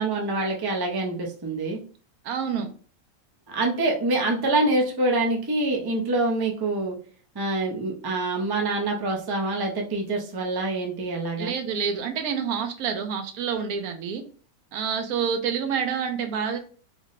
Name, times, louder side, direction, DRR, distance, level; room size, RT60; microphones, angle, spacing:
voice 1, 0.0-1.8 3.5-7.0 7.3-11.5, right 2 dB, 40° right, 0 dB, 0.3 m, -25 dB
voice 2, 2.2-2.7 11.4-14.2 14.7-16.6, right 7 dB, 90° right, 7 dB, 1.1 m, -28 dB
3.3 x 2.1 x 3.9 m, 0.41 s
omnidirectional pair, 1.5 m